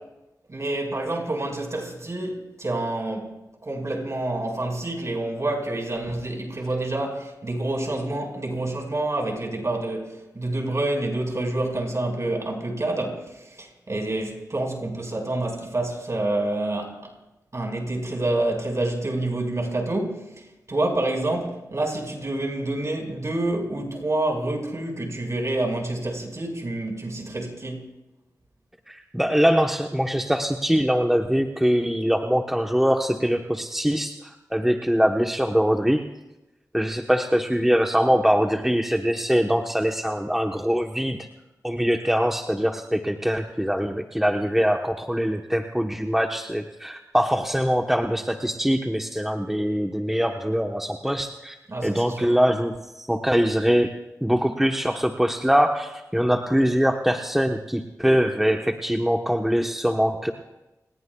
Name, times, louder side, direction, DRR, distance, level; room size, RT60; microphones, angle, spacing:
voice 1, 0.5-17.1 17.5-20.3 20.7-27.9 51.7-52.3, right 2 dB, 45° right, 5.1 m, -28 dB
voice 2, 28.9-36.0 36.7-41.2 41.6-51.6 51.8-53.9 54.2-60.3, equal, 5° right, 1.1 m, -23 dB
30.0 x 20.0 x 2.3 m
wide cardioid pair, 65°, 7 cm